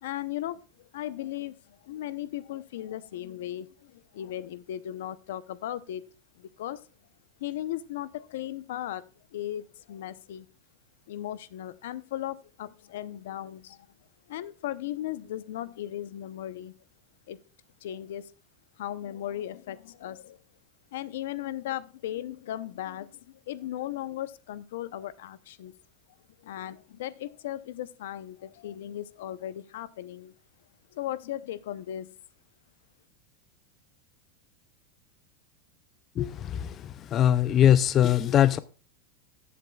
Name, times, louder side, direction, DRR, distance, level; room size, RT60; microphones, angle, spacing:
voice 1, 0.0-6.0 6.4-6.8 7.4-10.5 11.1-13.8 14.3-16.8 17.3-17.4 17.8-18.3 18.8-20.4 20.9-25.7 26.4-30.3 30.9-32.2, left 12 dB, 75° left, 0.7 m, -37 dB
voice 2, 36.2-38.6, left 10 dB, 25° left, 0.4 m, -22 dB
15.0 x 7.7 x 2.3 m
supercardioid pair, 165°, 0 cm